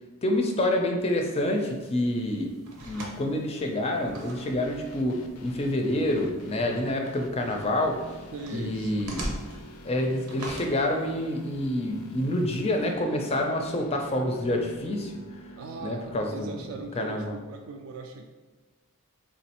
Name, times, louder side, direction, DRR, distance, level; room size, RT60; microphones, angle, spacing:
voice 1, 0.2-2.6 2.9-8.0 8.5-9.3 9.8-15.1 15.8-16.5 17.0-17.3, left 1 dB, 30° left, 3 dB, 0.4 m, -27 dB
sound 1, 1.0-12.9, right 1 dB, 90° right, 0.8 m, -44 dB
sound 2, 4.4-16.6, left 1 dB, 90° left, 0.4 m, -46 dB
voice 2, 8.3-9.0 15.6-18.2, right 4 dB, 70° right, 4 dB, 0.3 m, -39 dB
3.6 x 3.0 x 2.9 m, 1.3 s
head